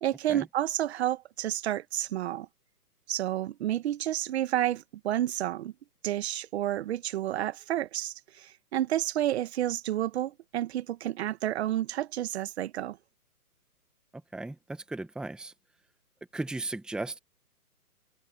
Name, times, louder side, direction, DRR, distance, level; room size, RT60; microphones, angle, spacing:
voice 1, 0.0-2.5 3.1-5.7 6.0-13.0, right 12 dB, 45° right, 1.8 m, -30 dB
voice 2, 14.3-15.5 16.3-17.2, right 2 dB, ahead, 1.5 m, -36 dB
hypercardioid pair, 140°, 46 cm